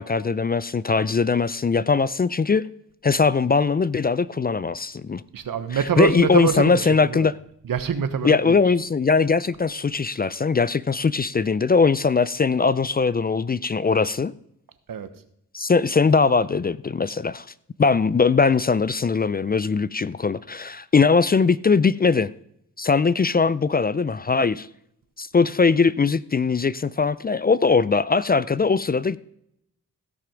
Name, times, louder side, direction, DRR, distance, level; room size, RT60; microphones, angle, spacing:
voice 1, 0.0-2.7 3.0-5.2 6.0-7.3 8.2-14.3 15.5-17.5 17.8-22.3 22.8-24.7 25.2-29.2, left 4 dB, 25° left, 0.4 m, -20 dB
voice 2, 5.3-7.3 7.6-8.7 14.9-15.1, right 7 dB, 70° right, 1.1 m, -25 dB
16.0 x 5.7 x 5.1 m
cardioid pair, 45°, 35 cm